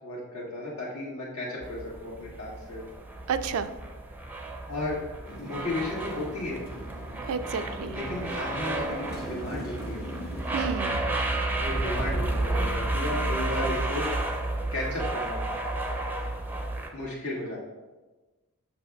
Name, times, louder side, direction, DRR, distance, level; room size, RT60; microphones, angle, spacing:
voice 1, 0.0-2.9 4.7-5.0 5.4-6.6 7.9-10.1 11.6-14.1 14.7-15.4 16.9-17.6, left 1 dB, 85° left, -4 dB, 1.8 m, -34 dB
sound 1, 1.6-16.9, right 2 dB, 10° right, 0.4 m, -31 dB
voice 2, 3.3-3.7 7.3-7.9 10.5-11.0, right 6 dB, 70° right, 11 dB, 0.4 m, -30 dB
Motorcycle, 5.3-10.7, equal, 45° left, 0.9 m, -42 dB
6.8 x 6.0 x 2.3 m, 1.2 s
head